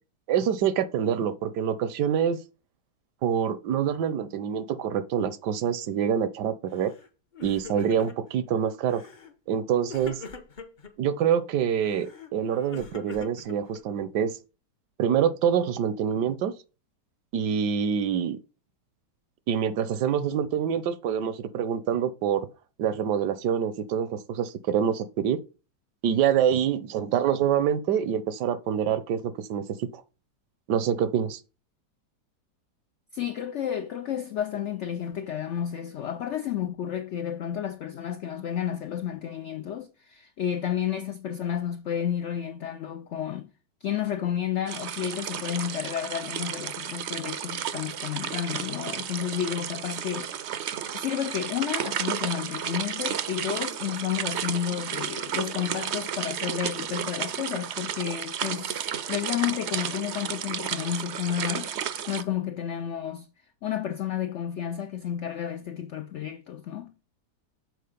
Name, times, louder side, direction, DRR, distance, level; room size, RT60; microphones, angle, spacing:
voice 1, 0.3-2.4 3.2-6.9 7.4-9.0 9.5-10.2 11.0-14.3 15.0-16.5 17.3-18.4 19.5-22.5 22.8-25.4 26.0-30.0 30.7-31.4, right 8 dB, 80° right, 1.3 m, -26 dB
Crying sobbing, 6.7-7.1 7.3-8.4 8.9-9.3 9.9-10.9 11.8-14.1, left 5 dB, 40° left, 0.7 m, -43 dB
voice 2, 33.1-43.5 43.8-50.5 50.9-61.7 62.1-63.3 63.6-66.9, left 9 dB, 75° left, 0.6 m, -31 dB
sound 1, 44.7-62.2, right 9 dB, 60° right, 0.7 m, -33 dB
6.7 x 4.5 x 5.0 m
omnidirectional pair, 1.8 m